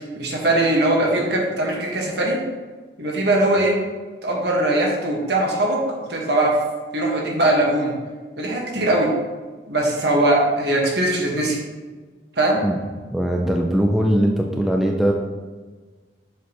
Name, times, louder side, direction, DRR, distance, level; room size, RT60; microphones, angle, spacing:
voice 1, 0.2-2.4 3.0-3.8 4.2-5.8 6.1-6.6 6.9-7.9 8.4-9.1 9.7-11.6 12.4-12.6, right 1 dB, 60° right, -1 dB, 1.5 m, -20 dB
voice 2, 13.1-15.1, equal, ahead, 0 dB, 0.4 m, -20 dB
7.1 x 6.2 x 3.0 m, 1.4 s
head